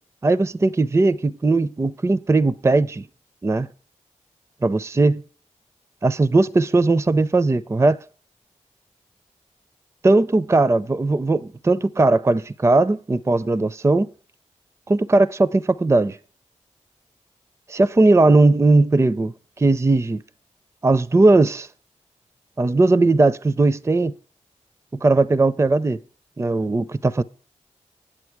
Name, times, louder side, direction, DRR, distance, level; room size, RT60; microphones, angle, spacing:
voice 1, 0.2-3.1 3.4-3.7 4.6-5.2 6.0-8.0 10.0-14.1 14.9-16.2 17.7-20.2 20.8-21.7 22.6-24.1 25.0-26.0 26.4-27.2, right 2 dB, 20° right, 0.4 m, -18 dB
8.7 x 7.6 x 4.6 m
cardioid pair, 40°, 13 cm